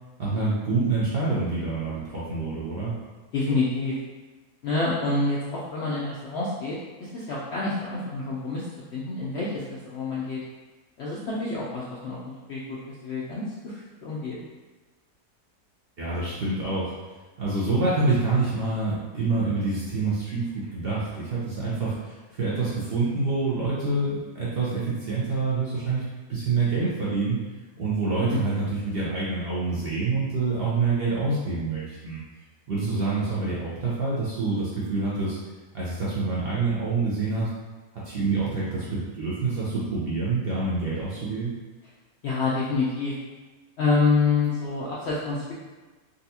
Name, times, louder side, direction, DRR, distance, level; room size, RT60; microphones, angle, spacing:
voice 1, 0.2-3.0 16.0-16.9 17.4-26.0 26.3-27.4 27.8-32.2 32.7-35.4 35.7-37.5 37.9-41.6, right 3 dB, 55° right, -8 dB, 0.7 m, -26 dB
voice 2, 3.3-4.0 4.6-8.6 8.9-10.4 11.0-12.2 12.5-12.8 13.0-14.4 28.3-28.4 42.2-43.1 43.8-45.5, left 3 dB, 65° left, -7 dB, 0.6 m, -27 dB
4.0 x 2.3 x 2.7 m, 1.3 s
omnidirectional pair, 1.6 m